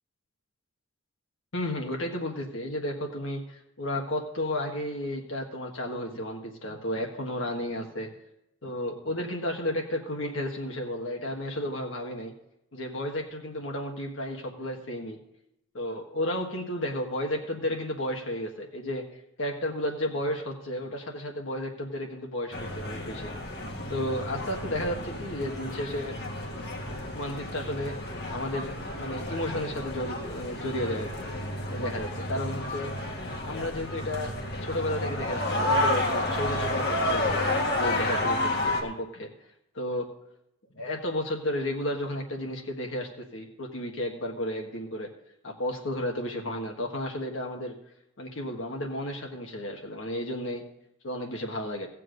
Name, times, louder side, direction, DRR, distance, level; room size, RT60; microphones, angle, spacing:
voice 1, 1.5-8.1 8.6-12.3 12.7-15.2 15.7-19.0 19.4-23.6 23.9-26.2 27.1-27.9 28.3-31.1 31.7-32.9 33.4-37.4 37.7-39.3 39.7-40.1 40.7-45.1 45.4-47.7 48.2-50.6 51.0-51.9, left 1 dB, 70° left, 1 dB, 1.5 m, -33 dB
sound 1, 22.5-38.8, left 1 dB, 50° left, 1.8 m, -31 dB
16.5 x 7.6 x 3.9 m, 0.82 s
head